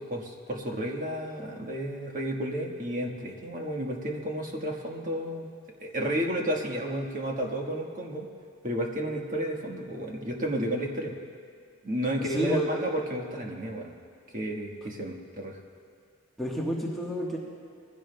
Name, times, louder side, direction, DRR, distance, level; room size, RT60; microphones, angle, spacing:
voice 1, 0.0-5.5 5.8-8.3 8.6-11.1 11.8-13.9 14.3-15.6, equal, 40° right, 0 dB, 1.4 m, -32 dB
voice 2, 12.2-12.7 16.4-17.4, right 1 dB, ahead, -5 dB, 1.3 m, -30 dB
21.5 x 15.5 x 2.3 m, 2.2 s
head